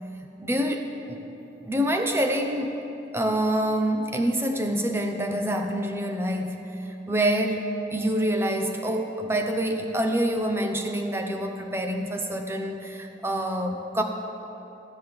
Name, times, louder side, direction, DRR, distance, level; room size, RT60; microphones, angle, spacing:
voice 1, 0.4-1.2 1.6-2.8 3.1-14.0, right 1 dB, 15° right, 3 dB, 0.8 m, -26 dB
15.5 x 5.3 x 7.8 m, 2.9 s
head